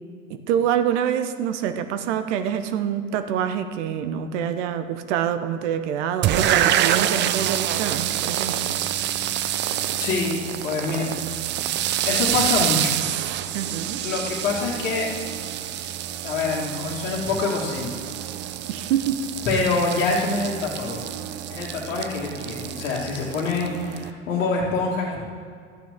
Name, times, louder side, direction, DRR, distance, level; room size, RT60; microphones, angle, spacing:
voice 1, 0.3-8.6 13.5-14.0 18.7-19.3, right 9 dB, 60° right, 10 dB, 1.0 m, -26 dB
sound 1, 6.2-24.1, right 11 dB, 30° right, 0.5 m, -27 dB
voice 2, 10.0-10.4 10.6-11.1 12.1-12.9 14.0-15.1 16.2-17.9 19.5-21.0 21.5-25.2, left 4 dB, 65° left, -5 dB, 2.0 m, -25 dB
13.5 x 8.9 x 3.6 m, 2.2 s
hypercardioid pair, 90°, 40 cm